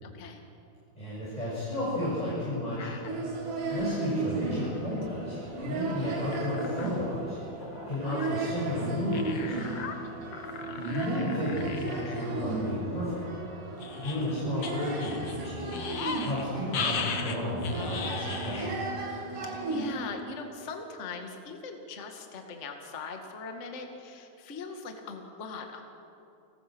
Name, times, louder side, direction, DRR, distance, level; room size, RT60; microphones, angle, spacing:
voice 1, 0.0-0.4 10.0-10.3 19.4-25.8, left 4 dB, 30° left, 3 dB, 1.4 m, -41 dB
voice 2, 1.0-2.9 3.7-7.4 7.9-9.5 10.7-13.2 14.0-18.7, left 1 dB, 10° left, -9 dB, 7.5 m, -32 dB
sound 1, 2.8-3.1 3.6-4.2 5.0-5.1 5.4-5.5 5.9-6.0 6.3-6.9 7.6-8.3 9.1-9.9 10.3-12.3 12.7-12.8 13.8-16.4 16.7-18.7 19.1-19.2, left 6 dB, 70° left, 1.3 m, -37 dB
sound 2, 3.1-20.0, right 3 dB, 55° right, 4.1 m, -35 dB
29.0 x 21.0 x 6.3 m, 2.8 s
omnidirectional pair, 4.6 m